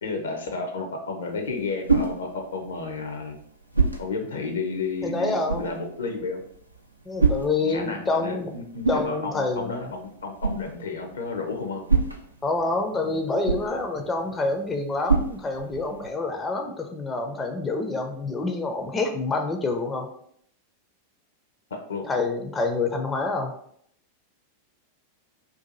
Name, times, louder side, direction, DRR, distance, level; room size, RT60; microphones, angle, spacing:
voice 1, 0.0-3.4 4.0-6.4 7.7-11.8 21.7-22.0, left 4 dB, 65° left, 4 dB, 0.6 m, -32 dB
sound 1, 1.2-16.1, right 4 dB, 85° right, 0.4 m, -30 dB
voice 2, 5.0-5.8 7.1-8.5 8.9-9.9 12.4-20.1 22.0-23.5, left 3 dB, 20° left, 4 dB, 0.4 m, -27 dB
Marimba xylophone, 13.3-15.0, right 4 dB, 40° right, 0.6 m, -45 dB
2.7 x 2.5 x 3.8 m, 0.67 s
figure-of-eight pair, 90°, 0 cm